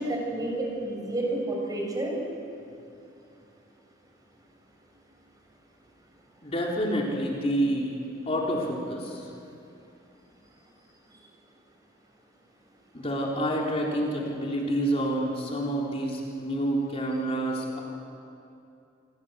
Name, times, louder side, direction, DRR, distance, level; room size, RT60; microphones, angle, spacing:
voice 1, 0.0-2.1, right 1 dB, 20° right, 0 dB, 6.7 m, -30 dB
voice 2, 6.4-8.0 8.3-9.3 12.9-17.8, right 1 dB, 35° left, -2 dB, 3.9 m, -28 dB
28.5 x 25.0 x 8.3 m, 2.7 s
head